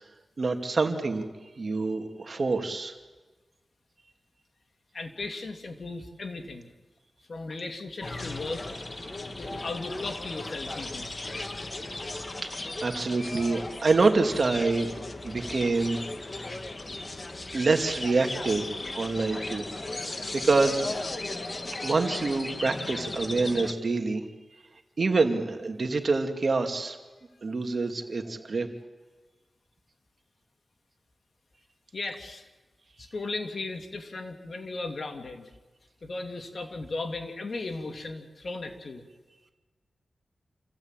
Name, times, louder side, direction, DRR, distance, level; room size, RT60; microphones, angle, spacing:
voice 1, 0.4-1.2 1.6-2.9 12.4-12.5 12.8-16.0 17.5-18.7 18.9-19.7 20.3-20.9 21.8-24.2 25.0-27.0 27.4-28.7, right 3 dB, 60° right, 5 dB, 2.5 m, -26 dB
voice 2, 4.9-6.7 7.3-8.7 9.4-11.1 31.9-32.4 33.0-35.5 36.0-39.0, left 3 dB, 60° left, 5 dB, 2.6 m, -36 dB
sound 1, 8.0-23.7, left 2 dB, 40° left, 1.9 m, -36 dB
27.5 x 15.5 x 9.0 m, 1.2 s
cardioid pair, 60°, 0 cm